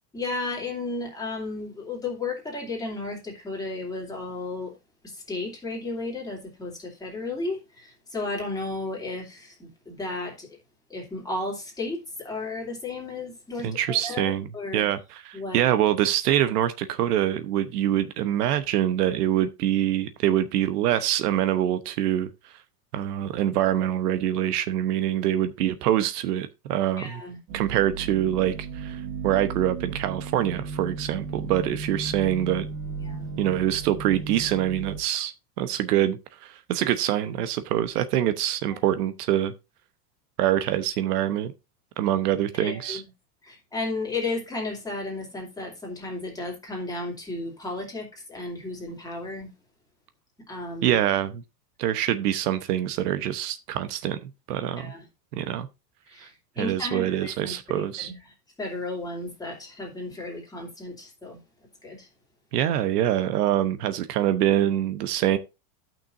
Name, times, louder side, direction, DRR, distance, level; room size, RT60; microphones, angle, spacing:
voice 1, 0.1-4.7 5.0-10.5 10.9-14.9 15.3-15.6 27.0-27.4 33.0-33.3 38.7-38.8 42.6-43.0 43.4-49.5 50.5-50.9 54.8-55.0 56.1-58.2 58.6-61.4 61.8-62.1, left 2 dB, 10° left, 2.6 m, -34 dB
voice 2, 13.6-14.5 14.7-22.3 22.9-27.2 27.5-32.7 33.4-39.5 40.4-41.5 42.0-43.0 50.8-51.4 51.8-54.9 55.3-55.7 56.2-56.3 56.6-58.1 62.5-65.4, right 12 dB, 75° right, 1.0 m, -25 dB
sound 1, 27.5-35.0, right 4 dB, 40° right, 1.4 m, -35 dB
14.0 x 6.0 x 2.6 m
supercardioid pair, 140°, 46 cm